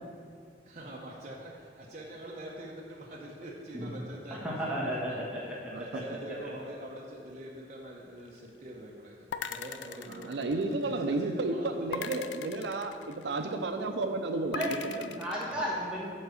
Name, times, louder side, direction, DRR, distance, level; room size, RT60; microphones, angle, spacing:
voice 1, 0.6-5.2 5.8-12.0 15.5-15.6, right 1 dB, 40° right, -4 dB, 0.8 m, -45 dB
voice 2, 4.3-6.0 14.5-16.1, equal, 5° right, -6 dB, 1.3 m, -34 dB
voice 3, 5.7-6.0 10.1-15.2, right 2 dB, 70° right, 6 dB, 0.5 m, -32 dB
sound 1, 9.3-11.0 11.9-13.5 14.5-15.5, left 7 dB, 80° left, 0.4 m, -40 dB
7.2 x 4.7 x 6.4 m, 2.2 s
head